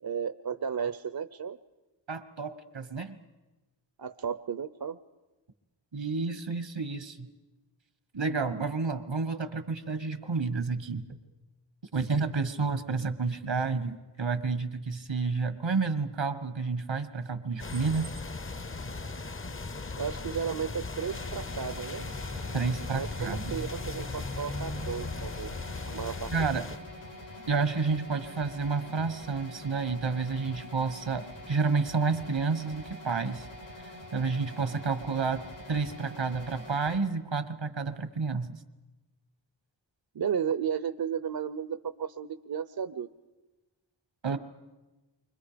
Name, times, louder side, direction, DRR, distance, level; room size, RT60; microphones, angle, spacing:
voice 1, 0.0-1.6 4.0-5.0 19.9-22.1 22.9-25.5 25.9-26.6 40.1-43.1 44.3-44.4, right 7 dB, 60° right, 13 dB, 0.7 m, -34 dB
voice 2, 2.1-3.2 5.9-7.3 8.1-11.0 11.9-18.1 22.5-23.6 26.3-26.6 27.5-33.5 33.8-35.4 35.7-38.6 44.2-44.4, right 4 dB, 85° right, 11 dB, 1.6 m, -30 dB
sound 1, 17.6-26.8, left 3 dB, 30° left, 0.7 m, -37 dB
sound 2, 21.0-37.0, left 1 dB, 85° left, 3.6 m, -45 dB
29.0 x 25.0 x 5.1 m, 1.1 s
wide cardioid pair, 50°, 44 cm